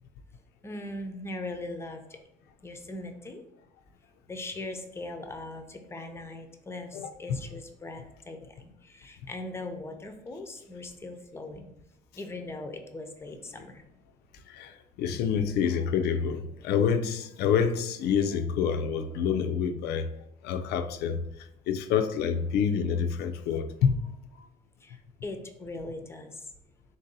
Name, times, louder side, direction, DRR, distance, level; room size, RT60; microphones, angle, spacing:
voice 1, 0.6-2.2 2.6-3.4 4.3-11.7 12.1-13.8 24.8-26.5, left 2 dB, 15° left, 0.5 m, -40 dB
voice 2, 6.9-7.4 14.5-20.1 20.4-24.0 24.4-24.5, left 7 dB, 75° left, 0.4 m, -27 dB
3.9 x 2.6 x 3.9 m
cardioid pair, 110°, 17 cm